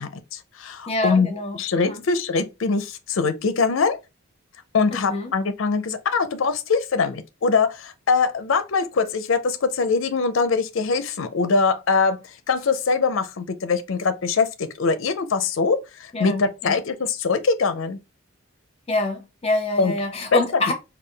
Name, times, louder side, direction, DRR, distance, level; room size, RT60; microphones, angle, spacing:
voice 1, 0.0-1.3 1.5-4.0 4.7-18.0 19.8-19.9 20.3-20.7, left 4 dB, 70° left, 0.5 m, -23 dB
voice 2, 0.9-1.6 1.9-2.0 4.9-5.3 16.1-16.8 18.9-20.7, left 1 dB, 30° left, 0.8 m, -26 dB
3.7 x 2.3 x 3.2 m
head